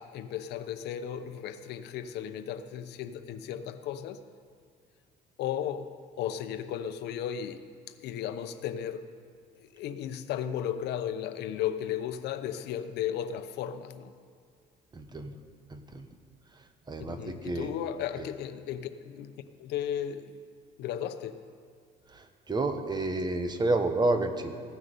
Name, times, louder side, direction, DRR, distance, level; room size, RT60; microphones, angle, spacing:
voice 1, 0.0-4.2 5.4-7.6 8.0-9.1 9.6-14.1 17.1-20.3 20.8-21.4, left 9 dB, 80° left, 10 dB, 0.8 m, -35 dB
voice 2, 14.9-15.3 15.7-16.1 16.9-17.7 18.2-18.3 22.1-24.5, right 2 dB, 25° right, 7 dB, 1.3 m, -30 dB
16.5 x 9.7 x 6.8 m, 2.3 s
cardioid pair, 110°, 17 cm